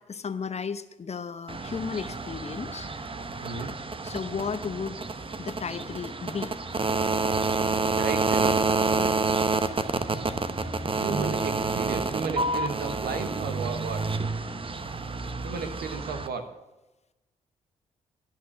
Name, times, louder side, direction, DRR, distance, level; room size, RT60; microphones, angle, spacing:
voice 1, 0.1-2.9 4.0-5.0 5.4-6.5 9.0-9.2, left 6 dB, 40° left, 12 dB, 0.9 m, -34 dB
sound 1, 1.5-16.3, right 3 dB, 35° right, 1.0 m, -28 dB
voice 2, 3.4-4.1 8.0-8.6 10.9-14.2 15.4-16.6, right 5 dB, 75° right, 7 dB, 1.4 m, -34 dB
12.5 x 5.9 x 8.3 m, 1.0 s
hypercardioid pair, 45°, 16 cm